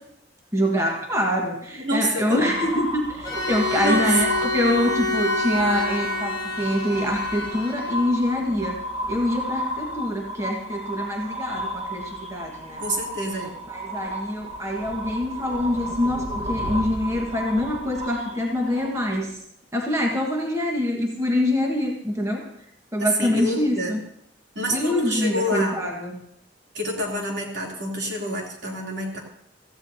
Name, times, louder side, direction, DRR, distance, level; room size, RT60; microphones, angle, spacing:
voice 1, 0.5-8.8 9.1-12.8 13.7-19.3 19.7-22.5 22.9-24.0 24.7-26.2, left 1 dB, 15° right, 0 dB, 1.6 m, -25 dB
voice 2, 1.8-2.7 3.8-4.1 12.8-13.5 23.0-23.9 24.5-25.8 26.7-29.2, equal, 70° right, -1 dB, 3.2 m, -27 dB
sound 1, 2.3-19.3, equal, 35° right, 1.4 m, -33 dB
Bowed string instrument, 3.2-8.2, left 2 dB, 20° left, 3.8 m, -27 dB
16.5 x 15.0 x 2.8 m, 0.73 s
head